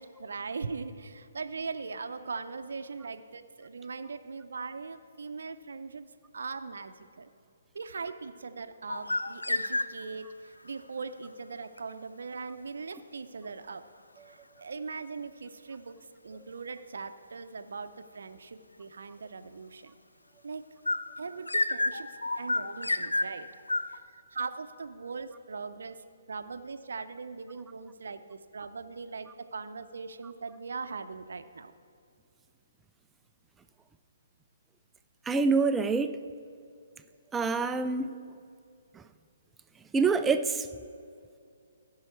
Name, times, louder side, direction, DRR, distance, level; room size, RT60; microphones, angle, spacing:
voice 1, 0.0-6.1 6.3-7.3 7.7-13.8 14.3-16.0 16.2-19.9 20.4-20.6 21.2-23.5 23.9-26.0 26.3-31.7, right 4 dB, 70° right, 10 dB, 0.6 m, -40 dB
sound 1, 8.9-10.3 20.9-24.0, left 2 dB, 90° left, 0.4 m, -30 dB
voice 2, 35.3-36.2 37.3-38.2 39.9-40.7, right 4 dB, 10° right, 10 dB, 0.4 m, -26 dB
15.0 x 5.6 x 4.5 m, 2.4 s
figure-of-eight pair, 135°, 0 cm